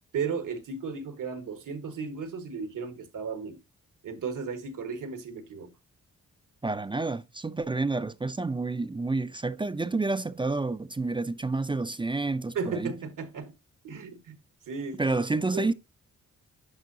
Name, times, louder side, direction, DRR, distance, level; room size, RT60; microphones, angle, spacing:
voice 1, 0.1-3.6 4.0-5.7 12.5-13.5 13.8-14.3 14.7-15.2 15.5-15.7, right 5 dB, 85° right, 1.5 m, -35 dB
voice 2, 6.6-12.9 15.0-15.7, right 3 dB, 15° right, 0.4 m, -29 dB
9.5 x 4.5 x 2.7 m
cardioid pair, 80°, 31 cm